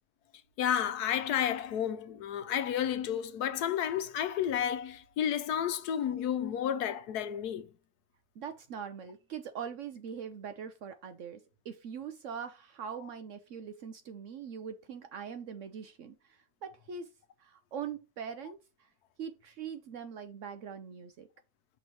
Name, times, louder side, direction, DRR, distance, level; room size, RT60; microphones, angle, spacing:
voice 1, 0.6-7.7, left 9 dB, 80° left, 1.3 m, -31 dB
voice 2, 8.4-17.1 17.4-18.9 19.2-21.3, right 7 dB, 65° right, 0.8 m, -42 dB
6.0 x 3.1 x 5.3 m
omnidirectional pair, 1.7 m